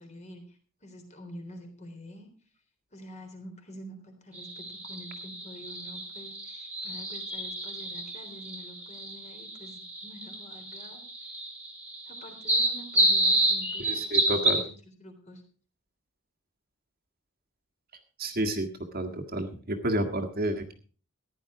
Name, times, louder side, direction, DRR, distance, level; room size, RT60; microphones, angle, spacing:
voice 1, 0.0-2.3 2.9-11.3 12.1-15.4, equal, 30° left, 4 dB, 3.6 m, -47 dB
sound 1, 4.3-14.6, right 1 dB, 5° right, 2.5 m, -30 dB
voice 2, 13.9-14.6 18.2-18.7 18.9-20.7, right 1 dB, 45° right, 5 dB, 1.7 m, -30 dB
15.0 x 10.5 x 4.9 m, 0.39 s
head